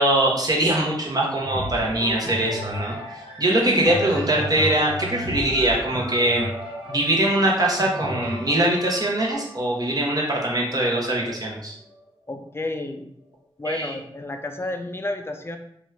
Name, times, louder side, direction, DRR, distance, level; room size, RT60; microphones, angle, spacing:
voice 1, 0.0-3.0 3.4-6.5 6.9-11.7 13.6-13.9, right 1 dB, 40° right, -3 dB, 1.0 m, -22 dB
sound 1, 1.4-11.2 11.9-12.0, left 1 dB, 70° right, 1.2 m, -34 dB
voice 2, 12.3-13.1 13.6-15.6, left 2 dB, 25° left, 5 dB, 0.4 m, -31 dB
2.9 x 2.4 x 3.2 m, 0.74 s
wide cardioid pair, 55°, 10 cm